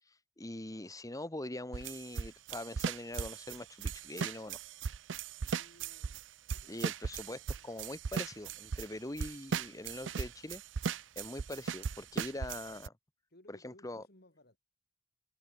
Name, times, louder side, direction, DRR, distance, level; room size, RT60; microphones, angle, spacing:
voice 1, 0.4-4.6 6.7-10.6 10.9-12.9 13.5-14.0, left 1 dB, 20° left, 1.4 m, -43 dB
sound 1, 1.7-6.2 6.5-8.9 9.2-12.9, right 6 dB, 75° right, 0.5 m, -37 dB
voice 2, 5.4-6.2 6.5-6.9 7.3-7.9 13.3-14.6, left 1 dB, 60° left, 5.0 m, -62 dB
sound 2, 6.9-12.9, equal, 40° right, 4.6 m, -70 dB
head